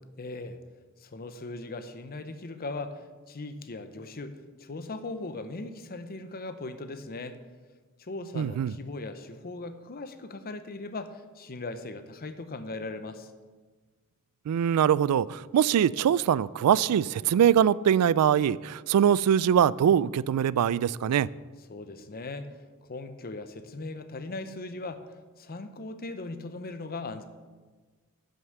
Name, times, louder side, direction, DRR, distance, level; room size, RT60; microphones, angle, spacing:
voice 1, 0.2-0.6 1.0-3.0 3.3-7.4 8.0-13.3 21.7-22.5 22.8-27.2, left 2 dB, 45° left, 10 dB, 0.8 m, -39 dB
voice 2, 8.4-8.7 14.5-21.3, right 9 dB, 85° right, 19 dB, 0.3 m, -23 dB
10.5 x 6.6 x 6.6 m, 1.4 s
head